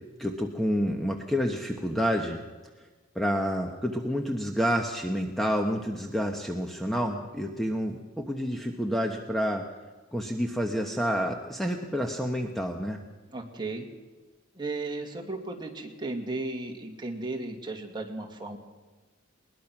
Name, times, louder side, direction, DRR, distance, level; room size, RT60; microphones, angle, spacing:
voice 1, 0.2-2.4 3.1-9.7 10.1-13.0, equal, ahead, 3 dB, 1.2 m, -29 dB
voice 2, 13.3-13.9 14.6-18.6, right 2 dB, 20° right, 2 dB, 2.3 m, -35 dB
21.5 x 20.0 x 6.0 m, 1.3 s
head